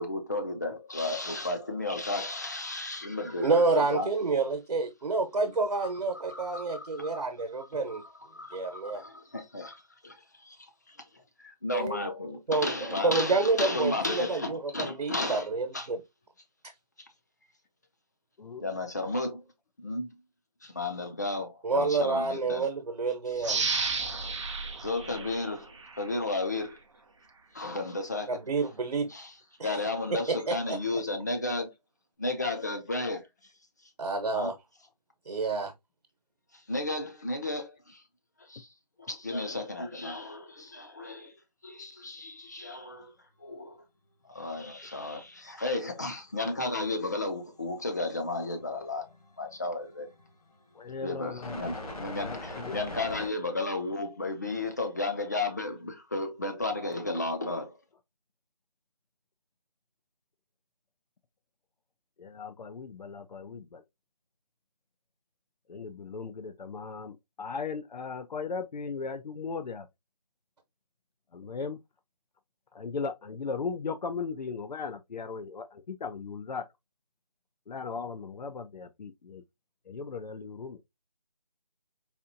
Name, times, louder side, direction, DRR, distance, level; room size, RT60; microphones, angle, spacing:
voice 1, 0.0-4.1 5.4-5.5 5.8-5.9 6.3-7.2 7.6-10.1 10.4-10.6 11.4-15.5 15.7-15.9 18.6-19.4 19.8-20.1 20.6-22.7 23.4-23.5 24.8-25.7 26.0-26.8 27.5-28.4 29.1-29.3 29.6-31.7 32.2-33.2 34.3-34.5 36.7-38.0 38.5-38.7 39.0-41.3 41.6-43.1 43.4-43.8 44.3-49.0 49.4-50.1 51.0-57.8, left 2 dB, 25° left, 0.5 m, -33 dB
voice 2, 3.4-8.0 8.5-9.0 11.7-12.0 12.5-12.7 13.0-16.0 21.6-23.6 28.3-29.1 29.6-29.7 30.1-30.6 34.0-34.5 35.3-35.7, right 3 dB, 65° right, 1.0 m, -28 dB
sound 1, 23.4-26.1 26.6-26.7, right 4 dB, 45° right, 0.6 m, -32 dB
sound 2, 45.2-45.3 46.7-47.5 47.8-53.3, left 1 dB, 60° left, 1.2 m, -43 dB
voice 3, 50.8-51.9 52.2-52.7 62.2-63.8 65.7-69.9 71.3-71.8 72.7-76.6 77.7-79.4 79.9-80.8, left 5 dB, 85° left, 0.5 m, -37 dB
4.2 x 2.5 x 2.5 m
figure-of-eight pair, 165°, 21 cm